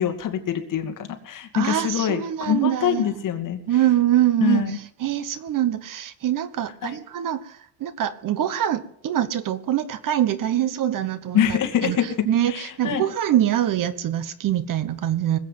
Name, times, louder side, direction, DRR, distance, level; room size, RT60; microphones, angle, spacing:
voice 1, 0.0-3.6 4.4-4.8 6.8-7.0 11.3-12.0 12.5-13.0, left 9 dB, 50° left, 6 dB, 2.4 m, -24 dB
voice 2, 1.5-3.1 3.7-12.0 12.3-15.4, right 11 dB, 55° right, 14 dB, 1.3 m, -24 dB
20.5 x 8.3 x 7.7 m, 0.66 s
cardioid pair, 130°, 40 cm